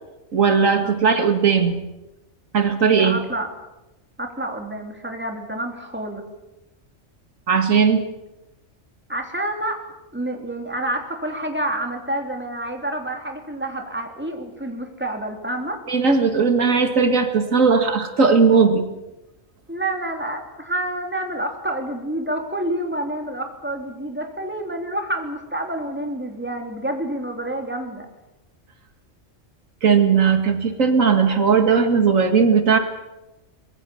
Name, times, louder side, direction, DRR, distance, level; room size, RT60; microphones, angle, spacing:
voice 1, 0.3-1.8 2.5-3.2 7.5-8.0 15.9-18.9 29.8-32.8, right 5 dB, 85° right, 7 dB, 2.3 m, -17 dB
voice 2, 0.8-1.3 2.9-3.5 4.2-6.2 9.1-9.8 10.1-15.8 19.7-28.1, right 1 dB, 10° right, 3 dB, 3.2 m, -28 dB
24.0 x 22.0 x 7.1 m, 1.0 s
omnidirectional pair, 1.3 m